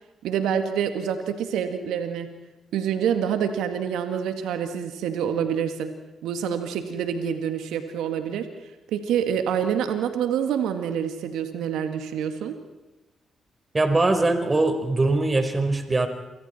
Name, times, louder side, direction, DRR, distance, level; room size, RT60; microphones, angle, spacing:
voice 1, 0.2-2.3 2.7-5.9 6.2-8.5 8.9-12.6, right 8 dB, 75° right, 7 dB, 2.1 m, -27 dB
voice 2, 13.7-16.1, right 2 dB, 30° right, 7 dB, 4.5 m, -22 dB
29.5 x 25.0 x 4.5 m, 1.1 s
hypercardioid pair, 40°, 0 cm